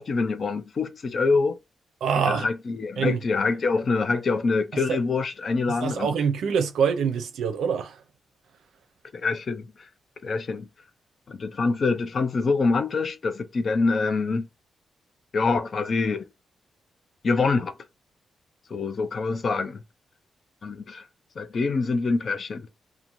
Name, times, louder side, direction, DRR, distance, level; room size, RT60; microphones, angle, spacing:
voice 1, 0.0-1.6 2.2-6.2 9.2-9.6 10.2-10.7 11.3-14.5 15.3-16.3 17.2-17.7 18.7-19.8 20.6-21.0 21.4-22.7, left 4 dB, 40° left, 0.4 m, -25 dB
voice 2, 2.0-2.5 3.0-3.2 5.8-7.9, right 6 dB, 85° right, 0.5 m, -25 dB
2.5 x 2.4 x 3.0 m
wide cardioid pair, 160°, 0 cm